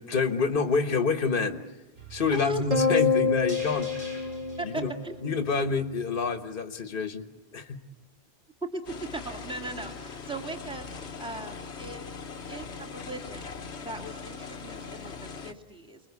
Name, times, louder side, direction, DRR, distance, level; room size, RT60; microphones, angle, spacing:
voice 1, 0.0-1.6 2.1-4.2 4.6-4.9 5.2-7.2 7.5-7.8, left 4 dB, 55° left, 8 dB, 1.5 m, -27 dB
sound 1, 2.0-6.2 6.5-6.6, right 3 dB, 65° right, 7.8 m, -46 dB
voice 2, 2.3-2.6 4.6-5.2 8.7-12.0 12.4-16.0, right 1 dB, 5° right, 3 dB, 2.4 m, -38 dB
sound 2, 2.7-5.3, left 5 dB, 35° right, 1.6 m, -26 dB
sound 3, 8.9-15.5, left 5 dB, 85° left, 1.5 m, -41 dB
29.5 x 21.5 x 8.3 m, 1.0 s
omnidirectional pair, 1.1 m